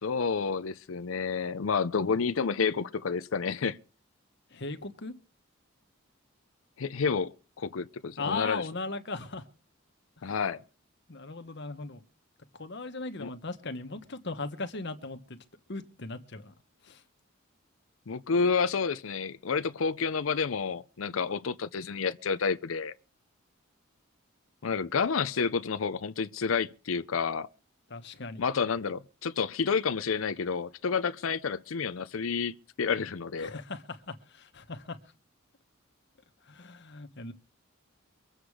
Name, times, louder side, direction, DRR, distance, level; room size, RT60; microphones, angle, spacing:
voice 1, 0.0-3.8 6.8-8.6 10.2-10.6 13.2-13.3 18.1-22.9 24.6-27.5 28.4-33.6, left 5 dB, 80° left, 0.6 m, -30 dB
voice 2, 4.5-5.1 8.2-9.4 10.2-10.3 11.1-12.0 12.6-15.4 15.7-16.5 16.8-17.0 27.9-28.4 33.4-35.0 36.5-37.3, left 3 dB, 60° left, 1.4 m, -38 dB
24.0 x 8.0 x 4.9 m
head